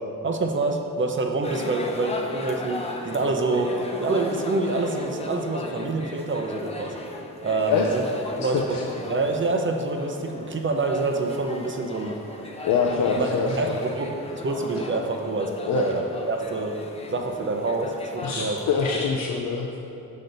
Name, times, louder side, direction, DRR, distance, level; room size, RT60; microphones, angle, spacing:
voice 1, 0.2-3.7 4.0-6.9 7.4-8.0 8.4-8.8 9.1-12.2 12.9-16.7 17.1-18.6, right 3 dB, 35° right, 4 dB, 0.6 m, -26 dB
sound 1, 1.4-19.1, left 2 dB, 20° left, 0.5 m, -36 dB
voice 2, 12.6-13.7 15.7-15.9 18.2-19.8, left 6 dB, 75° left, 0 dB, 0.6 m, -24 dB
7.6 x 5.2 x 3.9 m, 3.0 s
wide cardioid pair, 130°, 35 cm